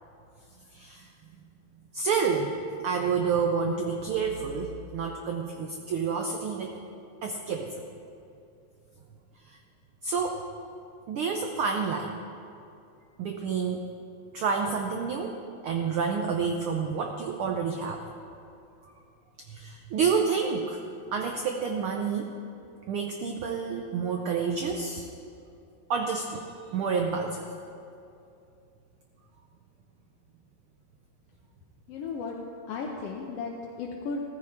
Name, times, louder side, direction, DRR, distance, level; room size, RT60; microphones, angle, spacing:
voice 1, 0.7-1.1 1.9-2.6 2.8-6.8 7.2-7.7 10.0-10.4 11.1-12.1 13.2-13.9 14.3-18.0 19.5-20.8 21.1-22.3 22.9-25.1 25.9-26.4 26.7-27.5, right 5 dB, 85° right, 3 dB, 1.2 m, -29 dB
voice 2, 31.9-32.4 32.7-34.2, left 4 dB, 70° left, -1 dB, 1.7 m, -35 dB
15.0 x 14.5 x 3.6 m, 2.6 s
omnidirectional pair, 3.4 m